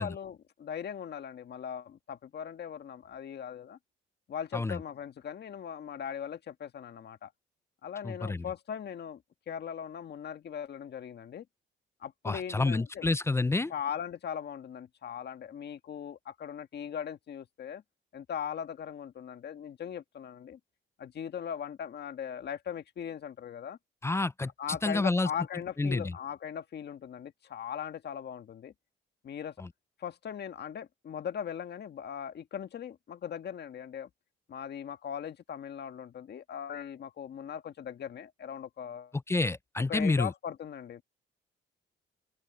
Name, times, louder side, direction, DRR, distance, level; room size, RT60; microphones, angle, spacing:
voice 1, 0.0-3.8 4.3-7.3 7.8-9.2 9.5-11.4 12.0-13.1 13.7-17.8 18.1-20.6 21.0-23.8 24.6-28.7 29.2-29.5 30.0-34.1 34.5-39.1 39.9-41.0, left 8 dB, 55° left, 1.6 m, -39 dB
voice 2, 8.0-8.5 12.2-13.7 24.0-24.5 24.8-25.3 25.8-26.1 29.6-29.7 39.3-40.3, left 3 dB, 15° left, 0.4 m, -29 dB
open air
cardioid pair, 90°, 20 cm